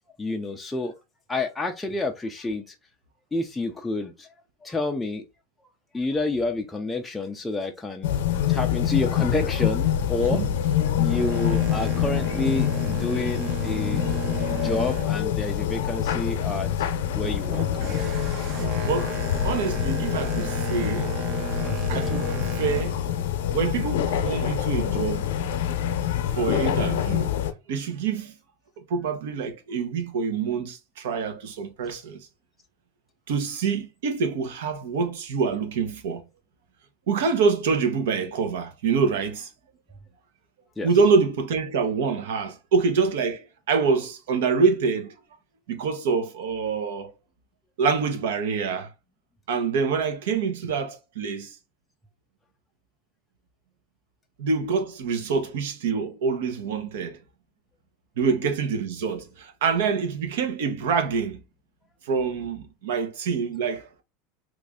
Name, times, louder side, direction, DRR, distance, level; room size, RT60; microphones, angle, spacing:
voice 1, 0.2-0.9 1.3-2.7 3.3-4.3 4.6-5.2 5.9-8.1 8.5-10.4 11.0-16.7 17.1-17.8 18.6-18.7 21.6-21.8 40.8-40.9, left 2 dB, 5° left, 0.3 m, -29 dB
sound 1, 8.0-27.5, left 10 dB, 90° left, 0.6 m, -26 dB
Boat Water vehicle, 11.1-16.1 16.5-22.8, right 8 dB, 35° right, 0.6 m, -36 dB
voice 2, 18.8-19.2 19.4-21.1 21.9-23.0 23.5-25.6 26.3-27.3 27.7-28.3 28.9-32.3 33.3-36.2 37.1-39.5 40.8-45.2 45.7-47.1 47.8-48.9 49.5-51.6 54.4-57.2 58.2-61.4 62.0-64.0, right 5 dB, 85° right, 0.9 m, -26 dB
3.1 x 2.5 x 3.6 m
supercardioid pair, 170°, 0 cm